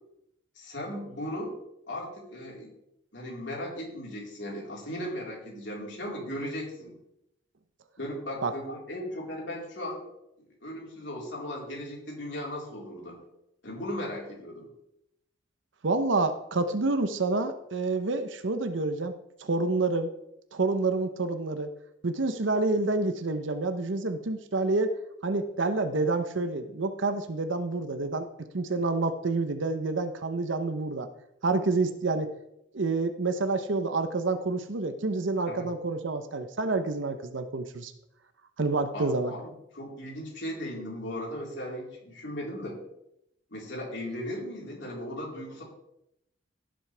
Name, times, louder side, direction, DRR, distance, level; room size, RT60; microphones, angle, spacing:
voice 1, 0.6-1.6 1.9-2.7 3.1-6.9 8.0-10.1 10.6-13.2 13.6-14.7 35.5-35.7 38.9-42.8 43.5-45.6, left 1 dB, 65° left, -3 dB, 4.1 m, -37 dB
voice 2, 15.8-19.1 19.4-20.1 20.5-21.7 22.0-24.9 25.2-28.3 28.5-31.1 31.4-32.3 32.7-37.9 38.6-39.3, right 3 dB, 75° right, 9 dB, 0.8 m, -28 dB
15.5 x 7.7 x 3.4 m, 0.81 s
head